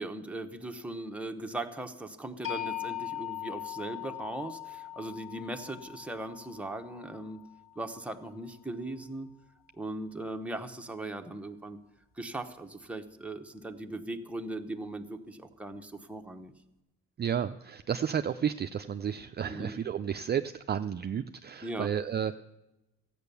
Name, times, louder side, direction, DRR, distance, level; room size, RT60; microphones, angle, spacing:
voice 1, 0.0-7.4 7.8-9.3 9.8-11.8 12.2-16.5 19.5-19.8 21.6-21.9, right 1 dB, 5° right, 4 dB, 1.0 m, -39 dB
sound 1, 2.4-8.4, left 12 dB, 45° left, 2.6 m, -40 dB
voice 2, 17.2-22.4, right 8 dB, 35° right, 8 dB, 0.4 m, -32 dB
13.5 x 9.1 x 6.9 m, 0.97 s
cardioid pair, 90°, 30 cm